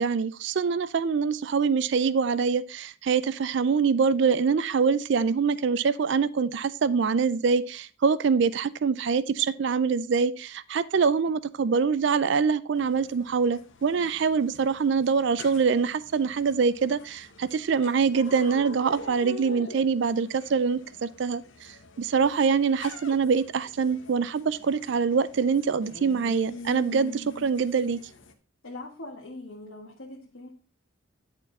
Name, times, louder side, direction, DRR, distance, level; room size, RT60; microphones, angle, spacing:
voice 1, 0.0-28.0, right 5 dB, 60° right, 17 dB, 0.4 m, -24 dB
sound 1, 12.7-28.3, left 2 dB, 65° left, 1.1 m, -45 dB
voice 2, 28.6-30.5, left 2 dB, 80° left, -2 dB, 1.6 m, -42 dB
10.5 x 4.5 x 4.1 m, 0.35 s
head